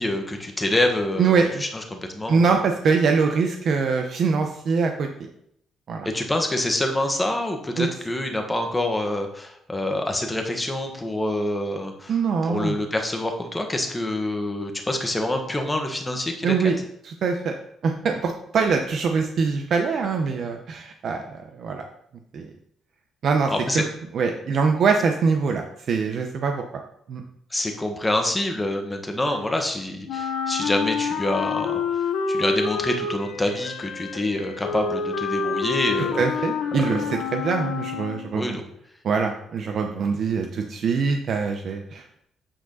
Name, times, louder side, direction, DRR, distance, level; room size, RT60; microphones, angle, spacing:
voice 1, 0.0-2.5 6.1-12.1 12.4-16.6 23.5-23.8 27.5-31.8 32.3-36.2 36.9-37.1 38.3-38.6, left 1 dB, 15° left, 3 dB, 1.4 m, -26 dB
voice 2, 1.2-1.6 2.3-5.1 5.9-6.1 7.8-7.9 12.1-12.8 16.4-16.8 17.0-17.5 17.8-21.8 22.3-22.5 23.2-23.8 24.1-26.6 27.1-27.2 36.2-38.6 39.0-42.0, right 5 dB, 60° right, 4 dB, 0.8 m, -23 dB
Wind instrument woodwind instrument, 30.1-38.4, left 5 dB, 85° left, 0.8 m, -28 dB
8.8 x 4.9 x 4.0 m, 0.73 s
cardioid pair, 90°, 0 cm